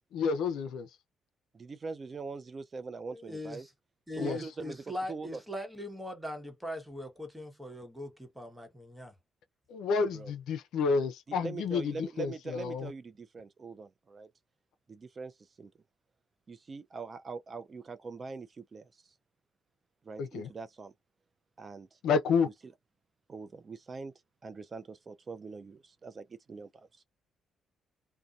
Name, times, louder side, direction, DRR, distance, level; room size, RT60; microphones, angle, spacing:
voice 1, 0.1-0.9 4.2-4.4 9.7-12.9 20.2-20.5 22.0-22.5, left 5 dB, 80° left, 0.5 m, -30 dB
voice 2, 1.5-3.7 4.2-4.8 5.1-5.4 10.1-10.3 11.4-14.3 14.9-15.3 15.6-15.7 16.5-19.0 20.0-20.9 21.6-22.0 22.6-22.7 23.3-24.1 24.4-26.9, right 4 dB, 35° right, 0.4 m, -42 dB
voice 3, 3.1-3.7 4.1-9.1, left 1 dB, 5° right, 1.1 m, -41 dB
2.6 x 2.1 x 2.4 m
cardioid pair, 90°, 0 cm